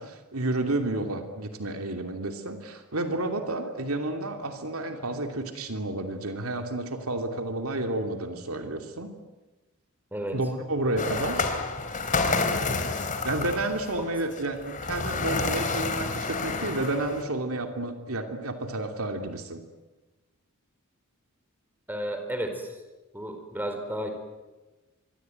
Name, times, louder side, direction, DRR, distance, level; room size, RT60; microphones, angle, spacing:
voice 1, 0.0-9.1 10.3-11.5 13.2-19.6, right 2 dB, 70° right, 5 dB, 2.8 m, -31 dB
sound 1, 11.0-17.2, left 3 dB, 35° left, 3.2 m, -29 dB
voice 2, 21.9-22.7 23.1-24.1, right 1 dB, 10° right, 6 dB, 4.4 m, -32 dB
25.5 x 23.5 x 9.2 m, 1.1 s
head